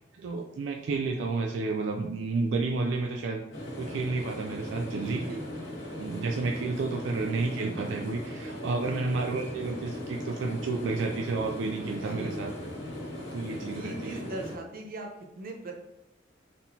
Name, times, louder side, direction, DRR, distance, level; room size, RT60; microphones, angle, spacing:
voice 1, 0.2-3.4 3.8-5.2 6.0-12.5 13.3-14.2, right 3 dB, 75° right, 2 dB, 0.4 m, -31 dB
sound 1, 3.5-14.5, left 1 dB, 85° left, 1.5 m, -39 dB
voice 2, 4.9-5.4 8.7-9.2 12.1-12.4 13.7-15.7, right 2 dB, 50° right, 2 dB, 0.7 m, -40 dB
4.1 x 3.7 x 2.7 m, 0.96 s
head